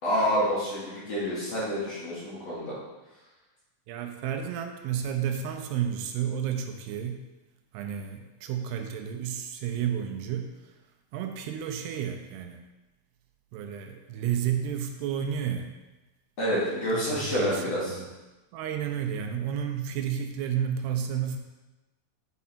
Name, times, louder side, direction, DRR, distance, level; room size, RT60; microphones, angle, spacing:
voice 1, 0.0-2.7 16.4-18.0, equal, 45° left, -8 dB, 2.8 m, -28 dB
voice 2, 3.9-7.2 7.7-10.5 11.1-12.6 13.5-15.7 16.9-18.1 18.5-21.4, right 8 dB, 85° right, 4 dB, 2.7 m, -31 dB
8.3 x 5.6 x 4.2 m, 1.1 s
omnidirectional pair, 4.8 m